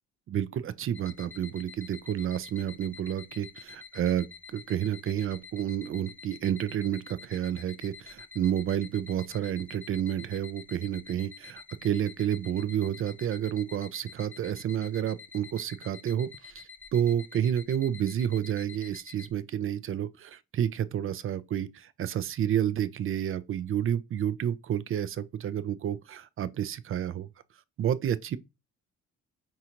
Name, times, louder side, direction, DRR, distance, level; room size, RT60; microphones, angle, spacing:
voice 1, 0.3-16.6 16.9-27.3 27.8-28.4, right 10 dB, 45° right, 0.4 m, -30 dB
sound 1, 0.9-19.3, left 5 dB, 5° left, 0.5 m, -49 dB
5.4 x 2.5 x 2.9 m
cardioid pair, 90°, 30 cm